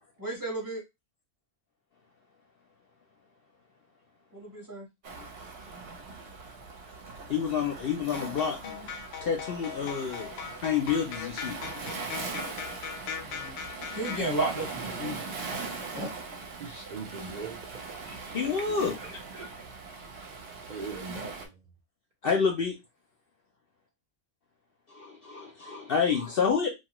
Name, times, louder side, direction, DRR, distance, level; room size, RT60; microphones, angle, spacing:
voice 1, 0.2-0.8 4.3-4.9 13.2-13.6 13.9-15.2 15.9-16.1, right 2 dB, 20° right, 0.7 m, -33 dB
Waves surf, 5.0-21.5, right 4 dB, 60° right, 0.8 m, -41 dB
voice 2, 7.3-8.9 9.2-11.6 15.5-15.6 18.1-19.5 22.2-22.7 24.9-26.7, left 6 dB, 60° left, 0.6 m, -29 dB
sound 1, 8.1-14.2, left 7 dB, 90° left, 1.0 m, -39 dB
voice 3, 16.6-17.6 18.4-19.1 19.4-19.5 20.7-21.6, right 4 dB, 80° right, 0.4 m, -41 dB
2.7 x 2.3 x 2.9 m
omnidirectional pair, 1.4 m